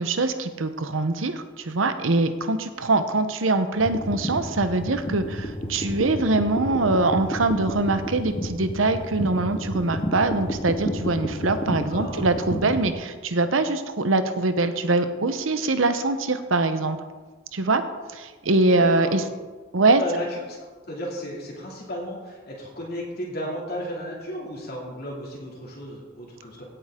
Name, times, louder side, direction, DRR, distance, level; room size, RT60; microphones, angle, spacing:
voice 1, 0.0-17.0 17.5-17.8 18.1-19.2 19.7-20.0, right 2 dB, 85° right, 10 dB, 0.9 m, -23 dB
sound 1, 3.8-12.9, equal, 30° left, 1.0 m, -31 dB
voice 2, 11.9-12.4 18.7-19.1 19.8-26.6, equal, 55° left, -3 dB, 2.6 m, -34 dB
17.0 x 7.8 x 3.7 m, 1.4 s
head